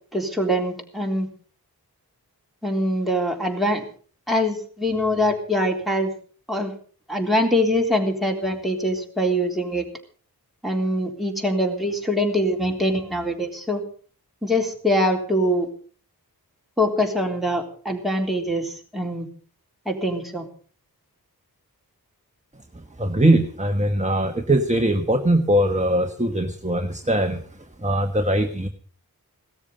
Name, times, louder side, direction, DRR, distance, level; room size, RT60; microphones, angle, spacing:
voice 1, 0.1-1.3 2.6-3.8 4.3-6.1 6.5-6.7 7.1-9.8 10.6-13.8 14.4-15.7 16.8-19.3 19.9-20.5, equal, ahead, 1 dB, 3.7 m, -23 dB
voice 2, 23.0-27.4 27.8-28.7, right 1 dB, 20° right, 6 dB, 1.4 m, -21 dB
17.5 x 13.5 x 5.2 m, 0.43 s
wide cardioid pair, 65°, 38 cm